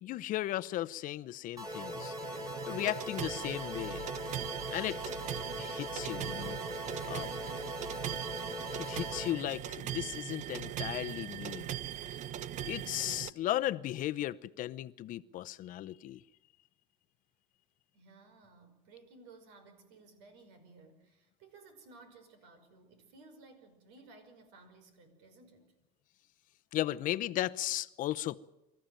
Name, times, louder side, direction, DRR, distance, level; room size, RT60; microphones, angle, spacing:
voice 1, 0.0-2.4 2.7-4.1 4.7-5.0 5.6-6.6 7.1-7.3 8.8-11.7 12.7-16.2 26.7-28.4, left 14 dB, 50° left, 0.8 m, -36 dB
sound 1, 1.6-9.3, left 1 dB, 20° right, 4.1 m, -41 dB
sound 2, 1.6-13.3, right 11 dB, 45° right, 0.7 m, -40 dB
voice 2, 17.9-25.7, right 3 dB, 75° right, 5.4 m, -57 dB
25.0 x 14.0 x 9.2 m
supercardioid pair, 120°, 18 cm